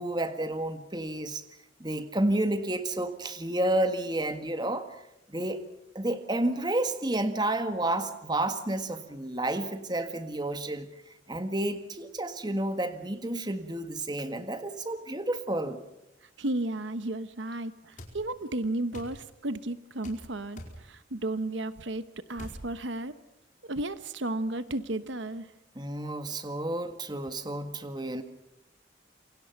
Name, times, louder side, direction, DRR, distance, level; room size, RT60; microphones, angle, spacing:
voice 1, 0.0-1.4 1.8-4.9 5.3-5.6 6.0-10.9 11.3-15.8 25.8-28.2, right 1 dB, 20° right, 8 dB, 1.7 m, -30 dB
voice 2, 16.4-23.1 23.6-25.5, right 2 dB, 70° right, 12 dB, 1.0 m, -33 dB
sound 1, 18.0-18.2 18.9-19.2 20.0-20.2 20.6-20.8 22.4-22.6, left 1 dB, 40° left, 4.8 m, -43 dB
28.0 x 24.0 x 5.9 m, 0.87 s
head